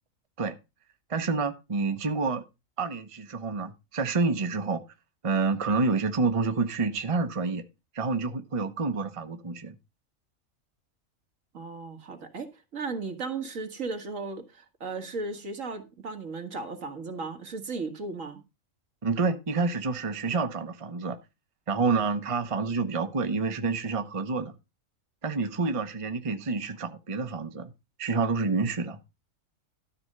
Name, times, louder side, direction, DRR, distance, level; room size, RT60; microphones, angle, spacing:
voice 1, 1.1-2.4 2.8-4.8 5.2-7.6 7.9-9.8 19.0-21.2 21.7-24.5 25.2-27.7 28.0-29.0, right 4 dB, 25° right, 0.9 m, -28 dB
voice 2, 11.5-12.5 12.7-18.4, right 3 dB, 70° right, 2.0 m, -35 dB
12.5 x 4.3 x 6.5 m
omnidirectional pair, 1.4 m